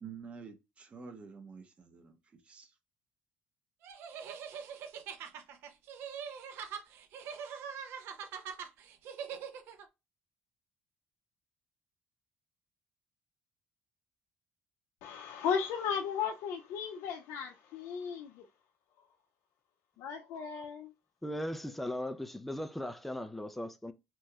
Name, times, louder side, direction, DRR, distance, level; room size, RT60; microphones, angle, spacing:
voice 1, 0.0-2.8, right 6 dB, 30° right, 0.7 m, -49 dB
sound 1, 3.8-9.8, right 7 dB, 70° right, 0.6 m, -43 dB
voice 2, 15.0-18.5 20.0-20.9, left 7 dB, 80° left, 0.4 m, -35 dB
voice 3, 21.2-23.9, left 1 dB, 5° left, 0.3 m, -38 dB
3.0 x 2.8 x 2.3 m
cardioid pair, 140°, 4 cm